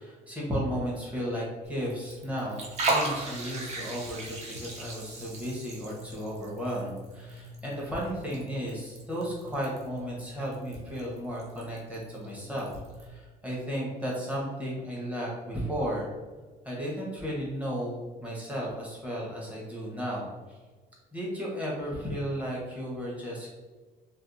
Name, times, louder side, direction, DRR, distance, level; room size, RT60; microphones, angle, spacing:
voice 1, 0.0-12.7 13.0-16.1 16.6-20.6 21.1-23.5, equal, 10° right, -4 dB, 0.9 m, -34 dB
Liquid, 1.6-13.1, right 2 dB, 40° right, 0.6 m, -37 dB
2.6 x 2.2 x 2.5 m, 1.3 s
cardioid pair, 110°, 17 cm